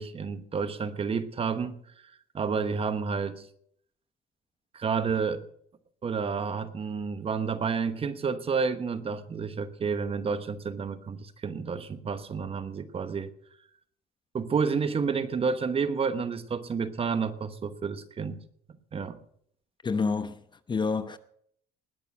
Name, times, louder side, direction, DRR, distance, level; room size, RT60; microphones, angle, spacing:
voice 1, 0.0-1.8 2.3-3.5 4.7-5.4 6.0-13.3 14.3-18.4 18.9-19.2, right 5 dB, 35° right, 1.1 m, -30 dB
voice 2, 19.8-20.4 20.7-21.2, left 4 dB, 25° left, 0.8 m, -28 dB
20.0 x 6.8 x 6.0 m
cardioid pair, 110°, 17 cm